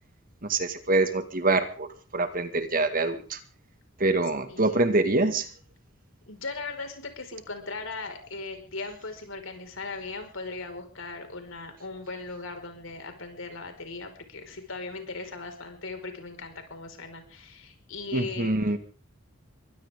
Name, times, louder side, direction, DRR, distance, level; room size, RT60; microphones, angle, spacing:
voice 1, 0.5-1.9 2.1-3.4 4.0-5.5 18.1-18.8, right 2 dB, 45° right, 9 dB, 1.9 m, -25 dB
voice 2, 6.3-18.5, left 3 dB, 75° left, 5 dB, 5.2 m, -38 dB
23.5 x 16.5 x 3.7 m, 0.38 s
head